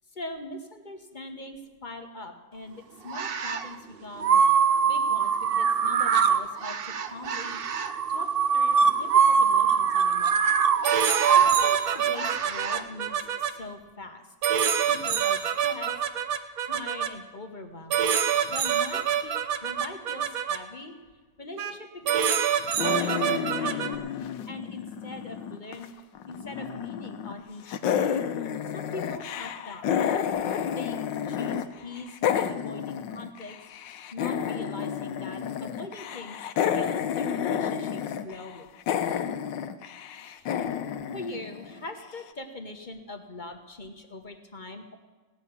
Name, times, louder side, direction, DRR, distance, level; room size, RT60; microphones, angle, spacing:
voice 1, 0.1-4.4 4.8-7.6 8.1-10.4 11.3-14.3 14.6-15.9 16.6-18.0 18.5-19.3 19.6-21.0 21.4-25.9 26.3-28.2 28.6-30.0 30.7-31.0 31.3-33.6 34.1-36.5 36.7-38.7 40.4-40.7 41.1-44.9, left 2 dB, 30° left, 5 dB, 1.2 m, -42 dB
sound 1, 3.1-3.7 4.2-12.8, right 6 dB, 75° right, 0.5 m, -23 dB
sound 2, 10.8-13.5 14.4-17.1 17.9-20.6 21.6-21.7 22.1-24.0, right 8 dB, 60° right, 1.1 m, -26 dB
sound 3, 22.8-25.9 26.2-27.4 27.7-31.7 31.9-42.0, left 8 dB, 90° left, 1.4 m, -30 dB
17.5 x 7.0 x 9.5 m, 1.3 s
omnidirectional pair, 1.9 m